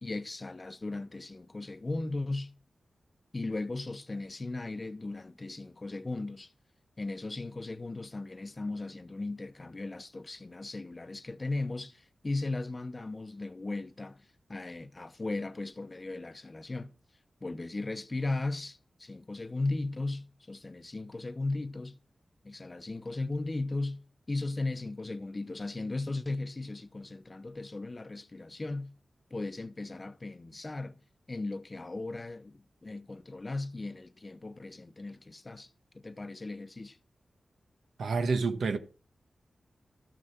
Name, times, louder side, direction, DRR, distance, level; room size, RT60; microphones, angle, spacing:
voice 1, 0.0-2.5 3.3-6.5 7.0-16.9 17.4-22.0 22.4-24.0 24.3-28.9 29.3-31.0 31.3-35.7 35.9-37.0, left 2 dB, 30° left, 0.8 m, -37 dB
voice 2, 38.0-38.8, right 4 dB, 85° right, 1.1 m, -28 dB
13.0 x 6.4 x 5.9 m
wide cardioid pair, 100°, 0 cm